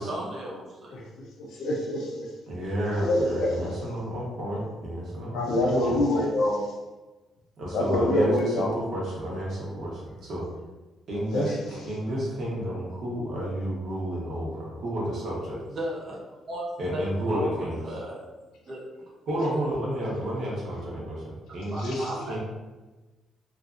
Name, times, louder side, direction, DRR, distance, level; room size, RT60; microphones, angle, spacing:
voice 1, 0.0-1.1 15.7-16.2 16.5-16.6 16.9-18.2 18.7-19.1 21.7-22.4, equal, 40° right, -4 dB, 0.5 m, -35 dB
voice 2, 0.9-2.3 3.0-3.8 5.3-6.7 7.7-8.7 11.3-11.5 21.8-22.0, left 1 dB, 90° left, -1 dB, 0.5 m, -26 dB
voice 3, 2.5-6.1 7.6-10.4 11.1-15.6 16.8-17.8 19.3-22.4, right 1 dB, 60° right, -5 dB, 0.9 m, -31 dB
2.7 x 2.4 x 2.4 m, 1.2 s
cardioid pair, 150°, 0 cm